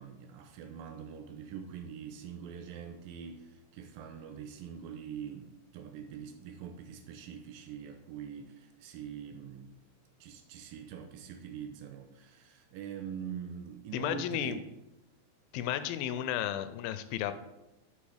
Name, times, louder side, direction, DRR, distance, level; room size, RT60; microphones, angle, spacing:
voice 1, 0.0-9.7 10.2-14.6, right 8 dB, 85° right, 6 dB, 2.3 m, -44 dB
voice 2, 13.9-14.6 15.5-17.4, left 11 dB, 85° left, 12 dB, 2.3 m, -33 dB
11.5 x 5.1 x 3.4 m, 0.93 s
omnidirectional pair, 4.2 m